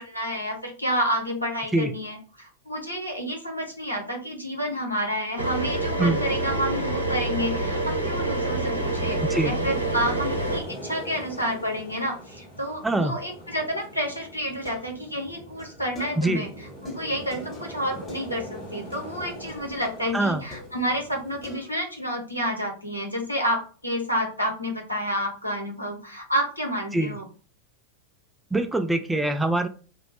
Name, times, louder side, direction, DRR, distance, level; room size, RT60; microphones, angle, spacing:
voice 1, 0.0-16.5 16.8-27.3, equal, 85° left, 0 dB, 0.9 m, -29 dB
sound 1, 5.4-10.6, right 2 dB, 85° right, 0.6 m, -27 dB
sound 2, 7.1-21.6, equal, 45° left, 1.4 m, -42 dB
voice 2, 12.8-13.1 16.2-16.4 20.1-20.4 26.9-27.1 28.5-29.7, right 2 dB, 5° right, 7 dB, 0.3 m, -23 dB
sound 3, 14.5-16.5 16.8-18.7 18.9-19.2 19.5-21.2 21.4-22.0, left 2 dB, 20° left, 0.8 m, -48 dB
2.9 x 2.0 x 2.9 m, 0.38 s
figure-of-eight pair, 90°, 0 cm